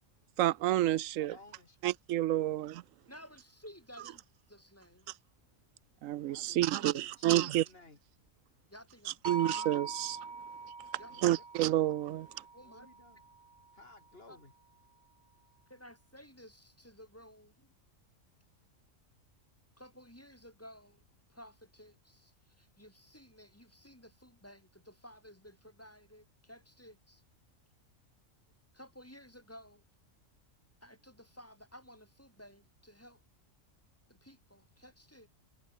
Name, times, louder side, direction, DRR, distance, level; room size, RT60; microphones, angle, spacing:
voice 1, 0.4-1.3 1.8-2.8 6.0-7.6 9.3-10.2 11.2-12.3, right 14 dB, 85° right, 1.0 m, -29 dB
voice 2, 1.2-1.8 2.3-2.4 6.3-8.0 11.1-11.4 12.6-13.2 13.7-14.5 18.4-18.5, left 2 dB, 50° left, 3.4 m, -57 dB
voice 3, 3.1-4.2 4.5-5.1 8.7-9.5 11.0-11.1 12.5-12.9 14.3-14.4 15.7-17.7 19.8-21.0 21.3-27.2 28.7-29.8 30.8-33.2 34.1-35.3, equal, 10° left, 8.1 m, -55 dB
sound 1, 9.2-13.5, right 4 dB, 60° right, 2.6 m, -43 dB
omnidirectional pair, 1.3 m